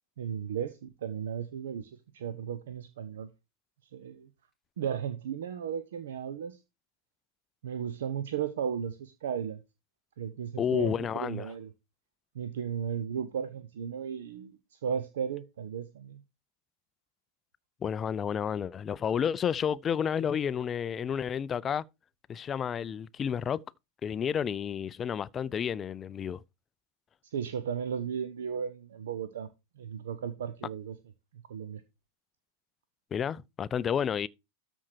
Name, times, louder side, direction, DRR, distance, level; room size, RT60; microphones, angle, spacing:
voice 1, 0.2-3.3 3.9-4.3 4.8-6.6 7.6-9.6 10.2-11.7 12.3-16.2 27.3-29.5 29.8-31.0 31.5-31.8, right 8 dB, 60° right, 0.7 m, -35 dB
voice 2, 10.6-11.5 17.8-21.8 22.3-23.6 24.0-26.4 33.1-34.3, left 8 dB, 25° left, 0.4 m, -31 dB
13.0 x 4.5 x 4.5 m
figure-of-eight pair, 90°, 0 cm